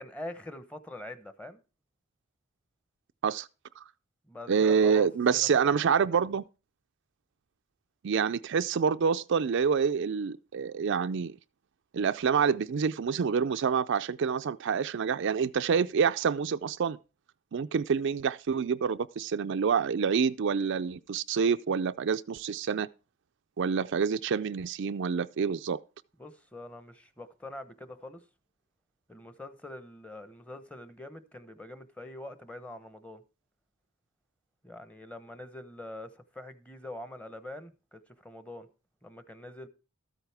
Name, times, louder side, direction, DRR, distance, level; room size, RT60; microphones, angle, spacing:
voice 1, 0.0-1.6 4.3-5.1 5.4-5.7 6.1-6.2 26.2-28.2 29.1-33.2 34.6-38.7 39.0-39.7, left 1 dB, 5° left, 0.9 m, -44 dB
voice 2, 4.5-6.4 8.0-11.4 11.9-17.0 17.5-22.9 23.6-25.8, right 6 dB, 60° right, 0.4 m, -27 dB
13.0 x 8.9 x 3.4 m
head